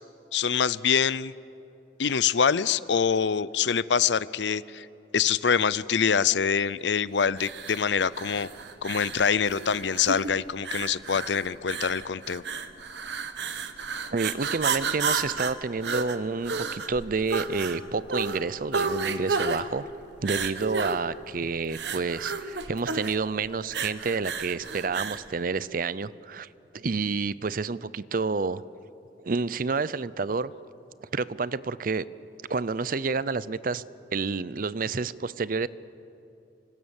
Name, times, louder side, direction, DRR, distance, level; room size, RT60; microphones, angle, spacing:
voice 1, 0.3-1.3 2.0-4.9 5.1-8.5 8.8-12.4, left 7 dB, 85° left, 19 dB, 0.6 m, -25 dB
sound 1, 7.3-25.3, right 4 dB, 80° right, 1.3 m, -32 dB
voice 2, 14.1-19.8 20.2-26.5 26.7-28.6 29.2-30.5 31.1-32.1 32.5-33.8 34.1-35.7, right 4 dB, 50° right, 18 dB, 0.6 m, -29 dB
26.5 x 25.0 x 7.2 m, 2.7 s
head